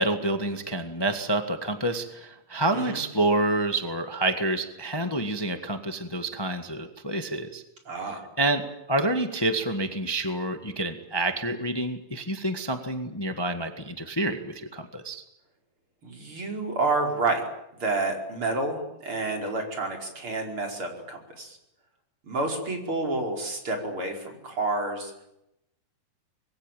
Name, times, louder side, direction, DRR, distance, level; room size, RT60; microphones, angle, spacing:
voice 1, 0.0-7.6 8.4-15.2, right 1 dB, 30° left, 7 dB, 0.4 m, -28 dB
voice 2, 7.9-8.2 16.0-17.4 17.8-21.6 22.2-25.1, right 2 dB, 40° right, 3 dB, 5.6 m, -29 dB
26.0 x 22.0 x 9.1 m, 0.85 s
omnidirectional pair, 3.8 m